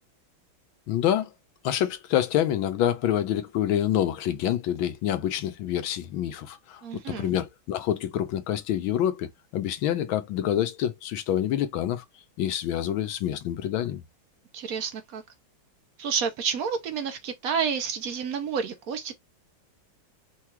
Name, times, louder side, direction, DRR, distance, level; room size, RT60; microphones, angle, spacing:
voice 1, 0.9-1.3 1.6-6.8 7.1-12.0 12.4-14.0, left 11 dB, 80° left, 1.5 m, -27 dB
voice 2, 6.8-7.3 14.5-15.2 16.0-19.1, right 6 dB, 60° right, 1.0 m, -30 dB
4.7 x 2.4 x 4.4 m
omnidirectional pair, 2.2 m